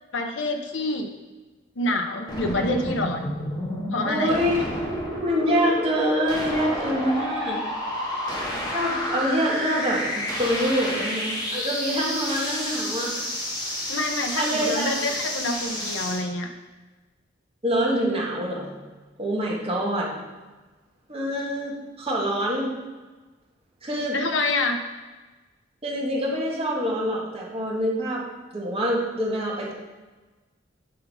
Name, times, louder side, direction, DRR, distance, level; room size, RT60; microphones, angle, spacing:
voice 1, 0.1-1.1 1.8-3.3 3.9-4.4 13.9-16.5 24.1-24.8, left 2 dB, 75° left, 4 dB, 0.7 m, -27 dB
sound 1, 2.3-16.2, equal, 25° left, 1.9 m, -30 dB
voice 2, 4.1-4.7 5.2-7.6 8.5-13.3 14.3-14.9 17.6-18.7 19.2-20.1 21.1-22.8 23.8-24.2 25.8-29.7, equal, 30° right, -3 dB, 1.7 m, -26 dB
6.5 x 5.5 x 5.5 m, 1.2 s
head